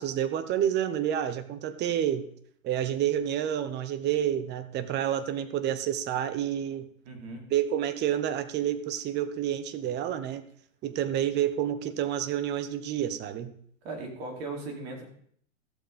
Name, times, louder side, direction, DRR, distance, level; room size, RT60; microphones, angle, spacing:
voice 1, 0.0-2.3 2.6-6.9 7.5-10.4 10.8-13.5, right 10 dB, 25° right, 12 dB, 1.0 m, -29 dB
voice 2, 7.0-7.5 13.8-15.1, right 3 dB, 50° right, 1 dB, 4.4 m, -38 dB
15.0 x 7.4 x 5.3 m, 0.62 s
hypercardioid pair, 125°, 40 cm